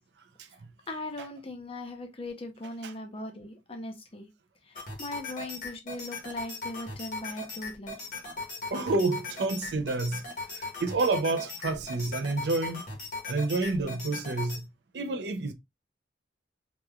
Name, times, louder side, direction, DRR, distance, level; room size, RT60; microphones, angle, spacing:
voice 1, 0.9-4.3 4.6-8.0, left 1 dB, 35° left, 0.8 m, -39 dB
sound 1, 4.8-14.6, left 3 dB, 50° left, 1.4 m, -39 dB
voice 2, 8.7-10.2 10.5-12.8 13.3-14.7 14.9-15.5, right 3 dB, 70° right, 0.5 m, -29 dB
3.5 x 3.0 x 2.3 m
head